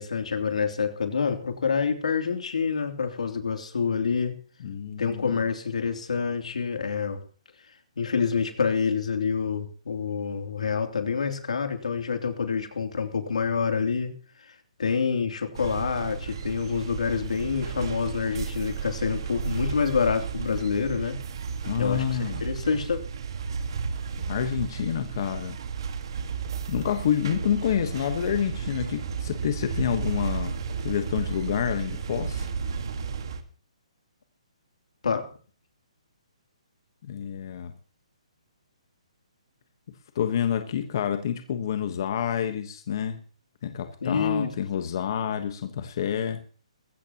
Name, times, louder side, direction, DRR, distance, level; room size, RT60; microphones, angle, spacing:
voice 1, 0.0-4.3 5.0-7.2 8.0-14.1 14.8-21.2 21.8-23.0 35.0-35.2 44.0-44.5, left 6 dB, 85° left, 5 dB, 2.9 m, -27 dB
voice 2, 4.6-5.4 21.6-22.4 24.3-25.6 26.7-32.5 37.0-37.7 40.1-43.2 43.6-46.4, left 9 dB, 35° left, 7 dB, 1.2 m, -28 dB
sound 1, 15.5-33.4, right 6 dB, 40° right, 1.7 m, -33 dB
20.0 x 16.0 x 3.0 m, 0.42 s
hypercardioid pair, 175°, 4 cm